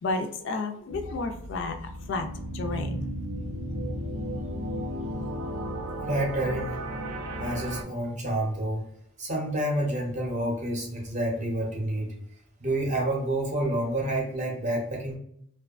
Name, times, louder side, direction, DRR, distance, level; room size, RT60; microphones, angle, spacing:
voice 1, 0.0-3.1, left 3 dB, 55° left, 5 dB, 0.3 m, -32 dB
sound 1, 0.9-7.8, right 1 dB, 80° right, 0.5 m, -34 dB
voice 2, 6.1-6.8 7.4-8.8 9.2-12.1 12.6-15.2, right 1 dB, 35° right, -1 dB, 0.6 m, -28 dB
2.6 x 2.2 x 2.3 m, 0.69 s
head